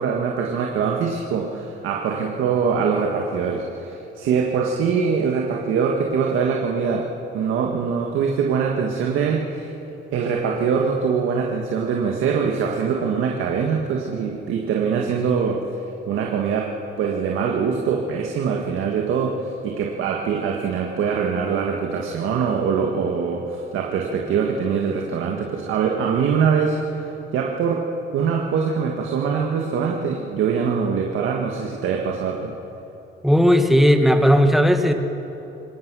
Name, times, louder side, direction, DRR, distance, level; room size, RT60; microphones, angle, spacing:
voice 1, 0.0-9.7 10.1-15.6 16.1-27.0 27.3-27.9 28.1-32.5, right 6 dB, 85° right, 0 dB, 1.8 m, -23 dB
voice 2, 33.2-34.9, equal, ahead, 6 dB, 1.8 m, -15 dB
23.5 x 18.0 x 6.3 m, 2.9 s
cardioid pair, 90°, 20 cm